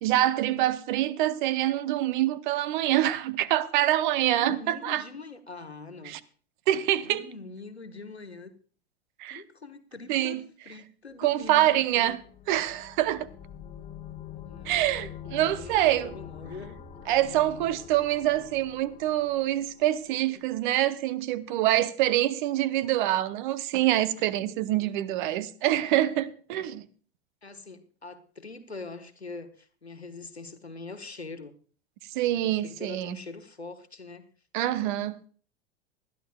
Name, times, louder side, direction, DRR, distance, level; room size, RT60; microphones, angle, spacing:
voice 1, 0.0-5.0 6.1-6.2 6.7-7.2 9.2-9.4 10.1-10.4 11.2-12.2 12.5-13.3 14.7-16.1 17.1-26.9 32.1-33.2 34.5-35.2, right 13 dB, 50° right, 0.8 m, -25 dB
voice 2, 4.3-6.2 7.0-8.5 9.3-12.2 14.4-14.8 15.3-16.7 20.1-20.6 24.5-25.0 27.4-31.5 32.3-34.3 34.7-35.0, left 3 dB, 90° left, 1.1 m, -43 dB
sound 1, 11.4-20.3, left 8 dB, 20° left, 1.2 m, -45 dB
20.0 x 12.5 x 2.3 m
figure-of-eight pair, 85°, 31 cm